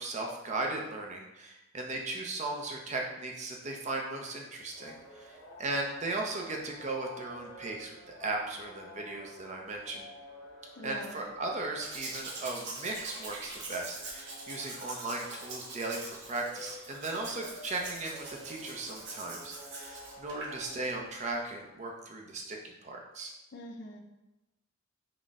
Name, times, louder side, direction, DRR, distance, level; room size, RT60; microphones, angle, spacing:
voice 1, 0.0-10.1 10.8-23.3, right 2 dB, 35° right, 1 dB, 0.5 m, -37 dB
sound 1, 4.6-21.6, left 1 dB, 90° left, 1.3 m, -51 dB
voice 2, 10.8-11.2 23.5-24.0, left 1 dB, 60° left, 3 dB, 0.5 m, -43 dB
Domestic sounds home sounds, 11.8-20.5 21.1-21.2, right 2 dB, 60° right, 0.8 m, -44 dB
4.0 x 2.1 x 3.5 m, 0.97 s
head